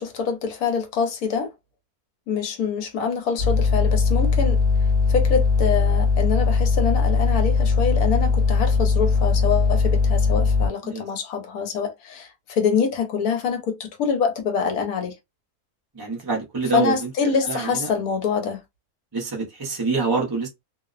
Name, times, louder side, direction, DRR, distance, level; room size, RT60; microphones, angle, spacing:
voice 1, 0.0-1.5 2.3-4.6 5.1-15.1 16.7-18.6, left 6 dB, 80° left, 1.2 m, -25 dB
sound 1, 3.4-10.7, left 4 dB, 50° right, 1.1 m, -20 dB
voice 2, 15.9-17.9 19.1-20.5, right 4 dB, 25° right, 0.5 m, -26 dB
2.7 x 2.0 x 2.4 m
omnidirectional pair, 1.5 m